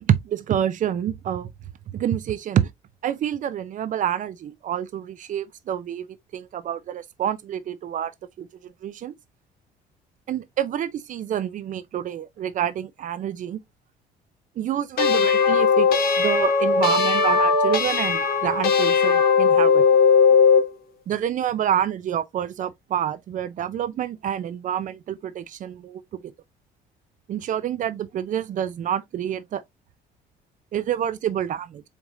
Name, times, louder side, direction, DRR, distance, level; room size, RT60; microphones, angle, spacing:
voice 1, 0.0-1.5 1.9-2.7 3.0-6.1 6.3-8.1 8.4-9.1 10.3-13.6 14.6-15.9 16.2-19.9 21.1-26.3 27.3-29.6 30.7-31.8, right 10 dB, 50° right, 0.5 m, -27 dB
sound 1, 15.0-20.7, left 5 dB, 65° left, 1.3 m, -18 dB
4.9 x 3.4 x 2.6 m
cardioid pair, 110°, 17 cm